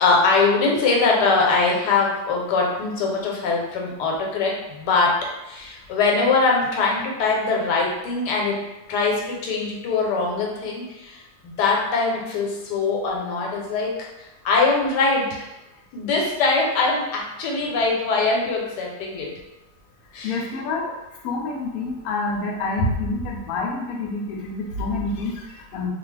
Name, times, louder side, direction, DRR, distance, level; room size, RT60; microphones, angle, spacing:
voice 1, 0.0-8.6 8.9-14.1 14.4-15.4 15.9-19.3 20.1-20.5, left 3 dB, 90° left, -2 dB, 1.3 m, -22 dB
voice 2, 20.2-20.9 21.2-25.9, left 2 dB, 70° left, -1 dB, 1.0 m, -27 dB
2.8 x 2.3 x 3.1 m, 0.97 s
omnidirectional pair, 1.7 m